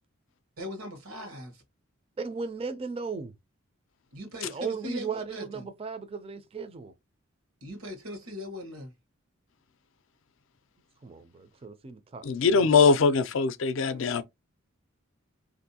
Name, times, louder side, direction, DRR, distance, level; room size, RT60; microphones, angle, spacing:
voice 1, 0.6-1.6 4.1-5.7 7.6-8.9 13.8-14.2, left 1 dB, 90° right, 1.1 m, -40 dB
voice 2, 2.2-3.4 4.4-6.9 11.0-12.8, right 5 dB, 25° right, 0.4 m, -36 dB
voice 3, 12.2-14.2, left 5 dB, 65° left, 0.4 m, -22 dB
3.7 x 2.6 x 2.7 m
head